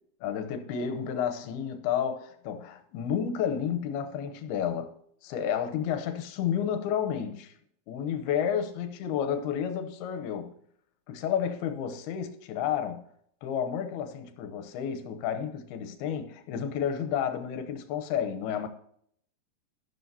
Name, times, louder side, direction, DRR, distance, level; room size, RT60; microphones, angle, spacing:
voice 1, 0.2-4.9 5.2-7.5 7.9-10.5 11.1-13.0 13.4-18.7, left 8 dB, 90° left, 2.9 m, -31 dB
12.5 x 12.5 x 2.8 m
omnidirectional pair, 4.5 m